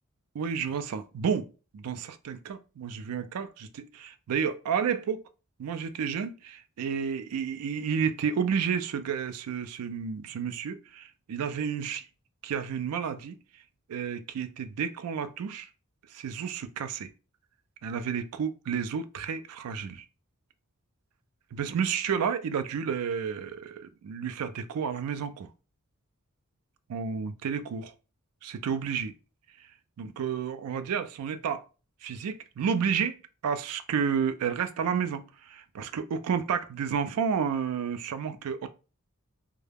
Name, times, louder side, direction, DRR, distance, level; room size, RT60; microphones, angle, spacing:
voice 1, 0.3-1.5 1.7-5.2 5.6-12.0 12.4-13.3 13.9-15.7 16.1-17.1 17.8-20.0 21.5-25.5 26.9-27.9 28.4-29.1 30.0-31.6 32.0-33.2 33.4-38.7, right 7 dB, 85° right, 0.3 m, -31 dB
2.2 x 2.1 x 3.2 m
head